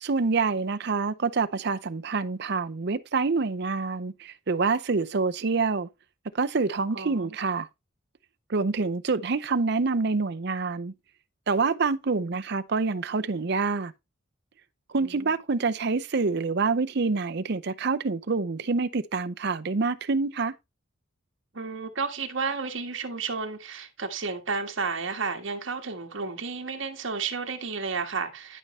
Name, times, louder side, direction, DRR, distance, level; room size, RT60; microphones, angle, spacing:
voice 1, 0.0-5.9 6.3-7.7 8.5-10.9 11.5-13.9 14.9-20.5, right 4 dB, 60° right, 0.6 m, -26 dB
voice 2, 6.9-7.4 12.3-12.4 15.0-15.3 21.5-28.6, right 4 dB, 75° right, 1.6 m, -32 dB
11.5 x 5.4 x 3.2 m
head